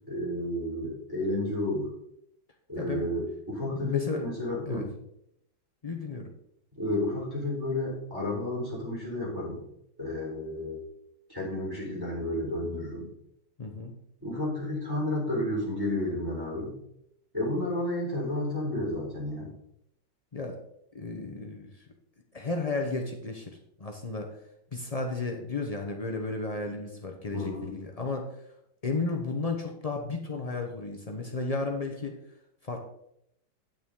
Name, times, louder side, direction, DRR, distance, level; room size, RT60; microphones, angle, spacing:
voice 1, 0.1-1.9 2.7-4.9 6.7-9.6 10.0-10.8 11.3-13.1 14.2-16.7 17.3-19.5 27.3-27.8, left 1 dB, 10° right, -3 dB, 3.8 m, -31 dB
voice 2, 2.8-3.1 3.7-4.2 4.7-4.8 5.8-6.3 13.6-13.9 20.3-20.6 20.9-21.9 22.3-24.3 24.7-28.3 28.8-32.1 32.6-32.8, left 3 dB, 80° left, 2 dB, 0.3 m, -33 dB
9.1 x 8.8 x 3.7 m, 0.75 s
omnidirectional pair, 2.2 m